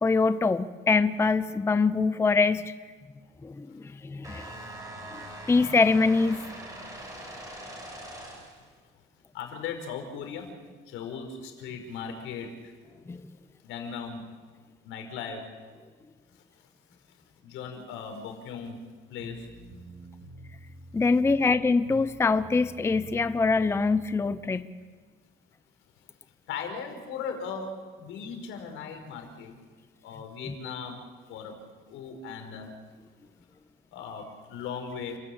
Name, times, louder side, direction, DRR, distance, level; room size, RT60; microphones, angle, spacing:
voice 1, 0.0-2.6 3.4-4.5 5.5-6.4 13.1-13.2 20.9-24.7, left 4 dB, 10° left, 13 dB, 0.6 m, -24 dB
sound 1, 4.2-8.7, right 1 dB, 15° right, 6.2 m, -42 dB
voice 2, 9.3-10.5 10.9-12.7 13.6-14.2 14.8-15.4 16.3-16.4 17.4-18.8 19.1-19.5 26.5-27.7 28.0-29.6 30.0-31.0 31.3-31.5 31.9-32.7 33.9-35.2, left 6 dB, 75° left, 5 dB, 4.8 m, -38 dB
sound 2, 19.2-24.5, right 1 dB, 70° right, 3.3 m, -47 dB
29.5 x 13.5 x 8.7 m, 1.6 s
cardioid pair, 130°, 21 cm